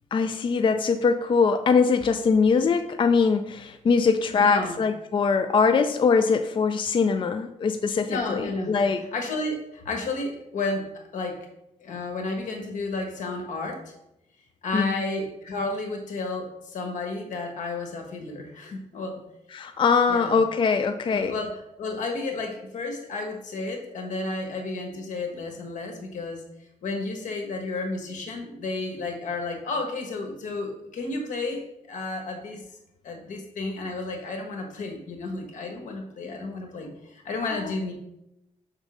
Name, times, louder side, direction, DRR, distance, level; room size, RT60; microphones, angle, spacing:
voice 1, 0.1-9.0 14.7-15.0 19.5-21.3, left 5 dB, 40° left, 8 dB, 0.4 m, -22 dB
voice 2, 4.3-4.8 8.1-8.8 9.1-11.5 11.8-13.9 14.6-19.2 20.1-20.3 21.1-26.4 26.8-31.6 31.9-32.6 33.0-37.9, left 3 dB, 85° left, 3 dB, 1.3 m, -32 dB
6.5 x 3.6 x 4.9 m, 0.85 s
cardioid pair, 95°, 13 cm